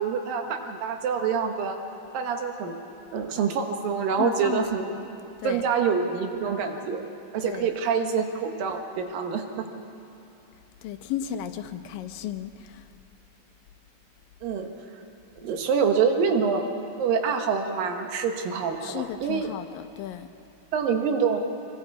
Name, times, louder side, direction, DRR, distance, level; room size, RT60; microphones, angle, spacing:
voice 1, 0.0-1.8 2.1-2.8 3.1-4.9 5.4-7.0 7.3-9.7 14.4-14.7 15.4-16.6 17.0-19.5 20.7-21.4, right 6 dB, 80° right, 5 dB, 3.0 m, -26 dB
voice 2, 4.2-5.1 5.4-5.6 7.4-7.7 10.8-12.8 18.8-20.3, left 10 dB, 80° left, 8 dB, 2.4 m, -34 dB
25.0 x 23.5 x 4.9 m, 2.9 s
omnidirectional pair, 4.0 m